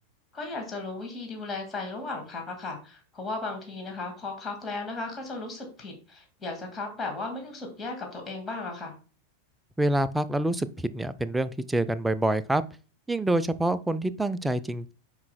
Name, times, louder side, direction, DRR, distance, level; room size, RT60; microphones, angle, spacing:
voice 1, 0.3-8.9, left 3 dB, 20° left, 2.0 m, -36 dB
voice 2, 9.8-10.7 10.9-12.6 13.1-14.9, right 1 dB, 5° right, 0.4 m, -26 dB
9.4 x 4.7 x 2.2 m
figure-of-eight pair, 90°, 0 cm